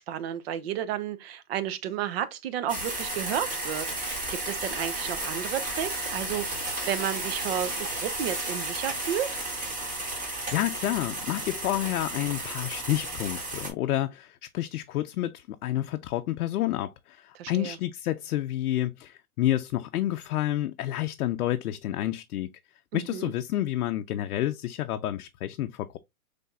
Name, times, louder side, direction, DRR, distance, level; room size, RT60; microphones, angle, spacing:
voice 1, 0.0-9.3 17.3-17.8 22.9-23.3, right 10 dB, 45° right, 0.7 m, -32 dB
sound 1, 2.7-13.7, right 2 dB, 15° right, 1.9 m, -33 dB
voice 2, 10.5-22.5 22.9-26.0, left 13 dB, 75° left, 0.6 m, -29 dB
5.4 x 3.4 x 2.2 m
hypercardioid pair, 145°, 44 cm